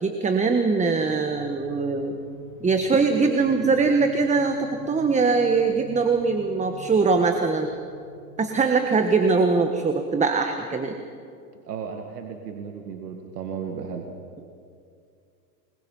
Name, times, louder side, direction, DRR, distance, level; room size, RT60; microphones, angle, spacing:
voice 1, 0.0-2.1 2.6-7.7 8.4-11.0, right 4 dB, 15° right, 6 dB, 1.5 m, -22 dB
sound 1, 1.0-8.9, left 3 dB, 40° left, 3.2 m, -46 dB
voice 2, 11.5-14.1, right 6 dB, 90° right, 3 dB, 2.2 m, -35 dB
28.0 x 21.5 x 5.6 m, 2.4 s
hypercardioid pair, 105°, 46 cm